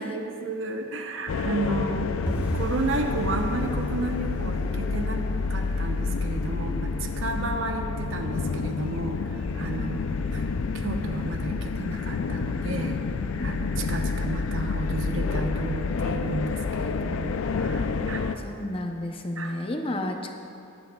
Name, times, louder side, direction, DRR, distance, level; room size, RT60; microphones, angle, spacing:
voice 1, 0.0-2.1 2.5-5.2 5.5-10.0 10.3-10.4 10.7-13.0 13.4-18.3 19.4-19.6, right 2 dB, 70° right, 4 dB, 0.8 m, -32 dB
sound 1, 1.3-18.4, left 4 dB, 90° left, 0.4 m, -29 dB
sound 2, 2.3-13.0 13.2-13.9 14.2-14.5 14.7-15.1 15.4-15.5 16.0-16.6 16.9-17.0 17.5-17.6, right 1 dB, 10° right, 1.1 m, -40 dB
voice 2, 18.4-20.3, left 1 dB, 25° left, 4 dB, 0.6 m, -32 dB
13.0 x 10.0 x 2.3 m, 2.6 s
head